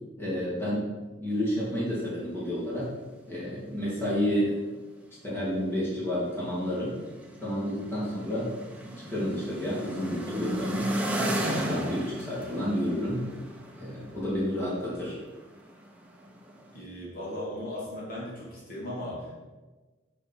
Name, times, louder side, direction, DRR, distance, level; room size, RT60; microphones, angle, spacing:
voice 1, 0.2-0.9 1.2-2.9 3.3-4.6 5.2-7.0 7.4-8.6 8.8-10.9 11.2-13.3 13.7-15.2, equal, 10° left, -8 dB, 2.5 m, -30 dB
sound 1, 3.7-3.8 4.0-4.1 5.3-5.4 6.0-6.1 6.2-15.2 15.7-16.7, right 1 dB, 5° right, 0.8 m, -34 dB
voice 2, 16.7-19.4, left 1 dB, 50° left, -5 dB, 2.5 m, -37 dB
10.0 x 5.0 x 4.6 m, 1.3 s
head